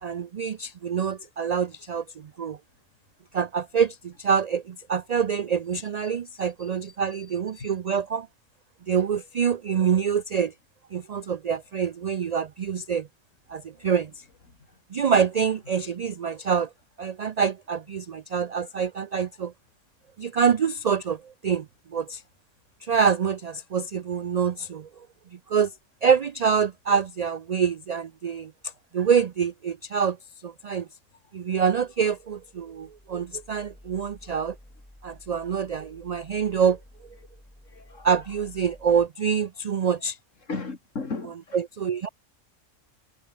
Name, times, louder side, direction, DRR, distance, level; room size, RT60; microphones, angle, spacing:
voice 1, 0.0-2.6 3.3-8.3 8.9-10.5 10.9-13.1 13.5-14.2 14.9-16.7 17.0-19.5 20.2-21.7 21.9-22.2 22.8-24.9 25.5-25.7 26.0-30.2 30.4-30.9 31.3-34.6 35.0-36.8 38.0-40.2 41.5-42.1, right 7 dB, 70° right, 0.3 m, -26 dB
voice 2, 7.1-7.7 37.7-38.1 40.5-41.6, left 4 dB, 85° left, 3.1 m, -36 dB
sound 1, 31.6-39.1, left 1 dB, 10° left, 1.8 m, -52 dB
omnidirectional pair, 1.3 m